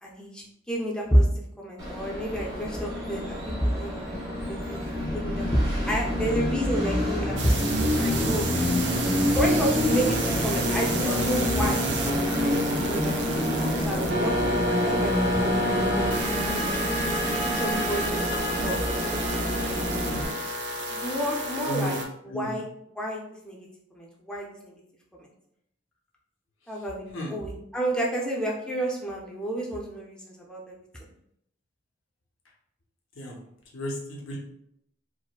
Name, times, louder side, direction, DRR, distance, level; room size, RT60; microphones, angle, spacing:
voice 1, 0.0-4.8 5.1-5.6 5.9-8.5 9.3-11.8 12.4-13.2 13.6-16.4 17.4-18.8 20.9-22.0 22.2-22.6 22.9-24.8 25.1-25.3 26.7-27.0 27.3-31.1, right 1 dB, 5° left, -3 dB, 0.5 m, -30 dB
Train, 1.8-20.3, left 1 dB, 20° right, 0.9 m, -27 dB
sound 1, 7.4-22.0, right 1 dB, 60° right, 0.5 m, -31 dB
sound 2, 14.1-21.0, left 3 dB, 50° left, 0.6 m, -36 dB
voice 2, 21.6-22.0 22.3-22.6 27.1-27.3 33.2-33.4 33.7-34.4, equal, 85° left, -2 dB, 0.8 m, -33 dB
4.7 x 2.1 x 2.2 m, 0.75 s
head